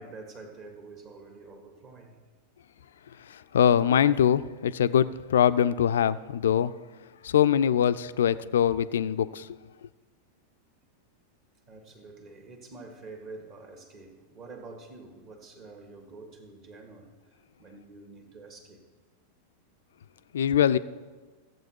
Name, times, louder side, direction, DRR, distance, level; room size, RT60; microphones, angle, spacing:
voice 1, 0.0-2.2 11.7-18.8, right 3 dB, 40° right, 1.6 m, -47 dB
voice 2, 3.3-6.7 7.2-9.5 20.3-20.8, left 9 dB, 65° left, 0.3 m, -23 dB
15.0 x 7.7 x 4.5 m
figure-of-eight pair, 90°, 0 cm